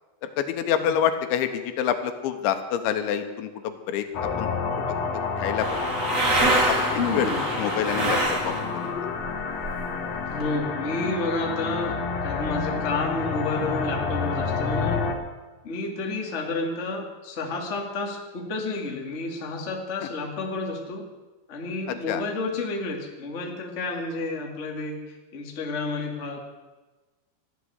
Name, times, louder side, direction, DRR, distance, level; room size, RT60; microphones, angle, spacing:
voice 1, 0.4-4.5 5.4-5.8 6.7-7.3 7.6-8.2 8.4-8.5 22.1-22.2, left 9 dB, 85° left, 8 dB, 3.3 m, -27 dB
sound 1, 4.1-15.1, left 5 dB, 60° left, 1.7 m, -29 dB
sound 2, 5.6-8.9 9.2-10.5, right 2 dB, 30° right, 1.5 m, -25 dB
voice 2, 7.0-7.5 10.3-11.9 12.2-15.0 15.6-21.1 21.5-26.4, left 3 dB, 30° left, 1 dB, 1.2 m, -30 dB
13.5 x 11.5 x 8.0 m, 1.2 s
omnidirectional pair, 5.2 m